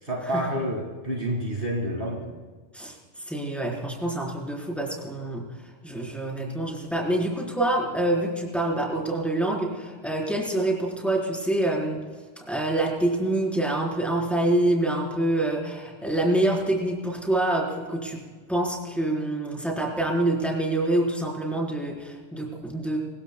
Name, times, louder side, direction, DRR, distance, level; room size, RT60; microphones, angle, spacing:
voice 1, 0.0-2.3, right 1 dB, 45° right, 0 dB, 2.4 m, -29 dB
voice 2, 3.3-5.4 5.8-12.0 12.5-18.2 18.5-23.0, right 1 dB, ahead, -2 dB, 4.3 m, -26 dB
25.5 x 21.0 x 2.3 m, 1.4 s
omnidirectional pair, 1.3 m